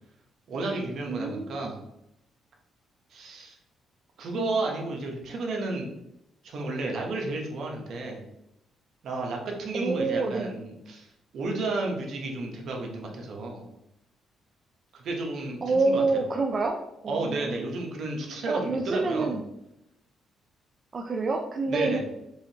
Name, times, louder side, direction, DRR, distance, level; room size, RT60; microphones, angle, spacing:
voice 1, 0.5-1.8 3.1-3.6 4.2-5.9 6.4-8.2 9.0-11.1 11.3-13.6 14.9-16.2 17.1-19.4 21.7-22.0, right 2 dB, 65° right, 1 dB, 0.9 m, -32 dB
voice 2, 1.1-1.7 4.3-4.5 9.7-10.5 15.6-17.4 18.5-19.4 20.9-22.0, right 3 dB, 40° right, 3 dB, 0.4 m, -27 dB
4.8 x 2.7 x 2.8 m, 0.84 s
cardioid pair, 90°, 0 cm